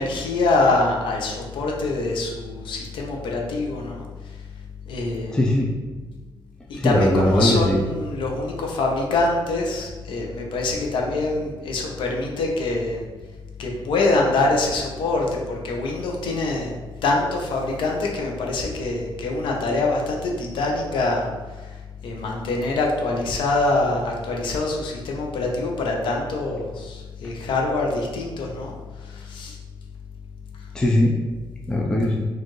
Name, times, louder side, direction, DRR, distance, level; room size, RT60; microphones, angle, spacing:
voice 1, 0.0-4.1 4.9-5.4 6.7-13.0 13.6-16.7 17.0-21.3 21.6-21.7 22.0-28.7 29.0-29.6, left 2 dB, 70° left, 0 dB, 0.7 m, -24 dB
voice 2, 5.3-5.7 6.8-7.8 30.7-31.1 31.7-32.3, left 1 dB, 10° left, -2 dB, 0.4 m, -19 dB
4.4 x 2.5 x 3.1 m, 1.3 s
cardioid pair, 145°, 9 cm